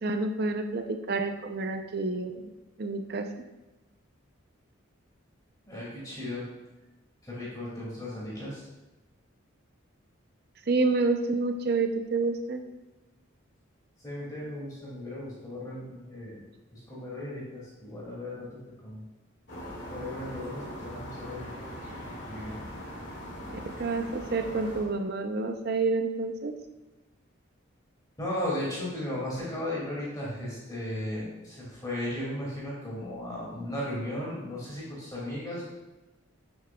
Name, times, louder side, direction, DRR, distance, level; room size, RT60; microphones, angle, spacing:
voice 1, 0.0-2.4 2.8-3.3 10.7-12.6 23.5-26.5, right 3 dB, 50° right, 6 dB, 0.5 m, -28 dB
voice 2, 5.7-6.5 7.2-8.7 14.0-16.4 16.7-19.0 19.9-21.5 21.9-22.6 28.2-35.7, left 1 dB, 20° left, -6 dB, 2.2 m, -36 dB
sound 1, 19.5-25.0, equal, 60° left, 1.9 m, -41 dB
8.5 x 6.9 x 2.3 m, 1.1 s
head